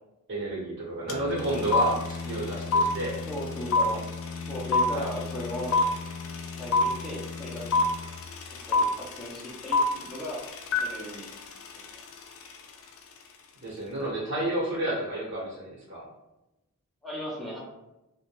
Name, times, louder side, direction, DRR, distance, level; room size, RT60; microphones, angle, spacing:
voice 1, 0.3-3.2 4.9-5.1 13.6-16.1, right 1 dB, 55° right, -5 dB, 1.0 m, -31 dB
Bowed string instrument, 1.0-9.0, left 4 dB, 85° right, 0.8 m, -38 dB
sound 1, 1.1-1.2 1.4-12.6, left 3 dB, 65° left, 0.3 m, -26 dB
voice 2, 3.3-4.1 4.5-5.8 6.6-7.8 8.5-10.4 10.8-11.3 11.9-12.0 17.0-17.6, left 1 dB, ahead, -6 dB, 0.4 m, -37 dB
2.2 x 2.1 x 2.9 m, 0.95 s
head